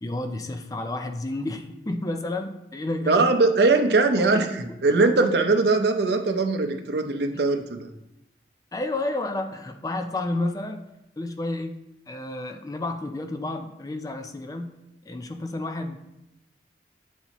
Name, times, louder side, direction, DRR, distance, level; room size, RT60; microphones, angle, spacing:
voice 1, 0.0-3.3 4.2-4.5 8.7-10.8 11.2-11.7 12.1-14.7 15.1-16.0, left 2 dB, 20° left, 6 dB, 0.4 m, -31 dB
voice 2, 3.1-7.9, right 3 dB, 70° right, 6 dB, 0.6 m, -21 dB
9.2 x 4.1 x 3.0 m, 0.88 s
head